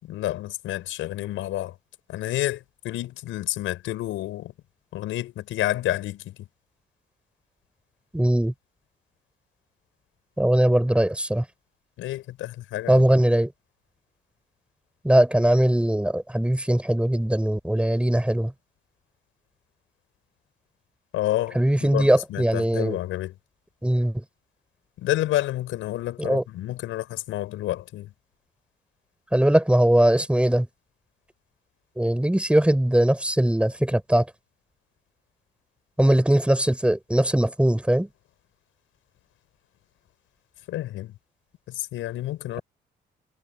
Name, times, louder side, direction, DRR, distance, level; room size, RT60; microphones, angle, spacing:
voice 1, 0.0-1.8 2.1-4.5 4.9-6.5 12.0-13.1 21.1-23.4 25.0-28.1 40.7-41.1 41.7-42.6, left 14 dB, 90° left, 6.1 m, -29 dB
voice 2, 8.1-8.5 10.4-11.4 12.9-13.5 15.0-18.5 21.6-23.0 23.8-24.2 26.2-26.4 29.3-30.7 32.0-34.3 36.0-38.1, right 1 dB, 5° right, 5.7 m, -20 dB
cardioid pair, 90°, 20 cm